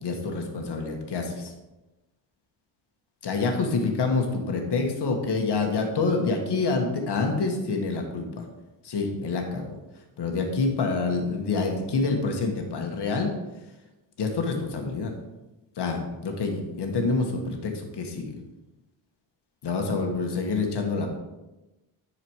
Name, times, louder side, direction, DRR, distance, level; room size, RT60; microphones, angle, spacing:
voice 1, 0.0-1.5 3.2-8.5 8.8-9.8 10.2-13.3 14.2-15.1 15.8-18.4 19.6-21.1, left 4 dB, 55° left, 3 dB, 1.7 m, -27 dB
10.5 x 4.9 x 4.8 m, 1.0 s
cardioid pair, 115°, 48 cm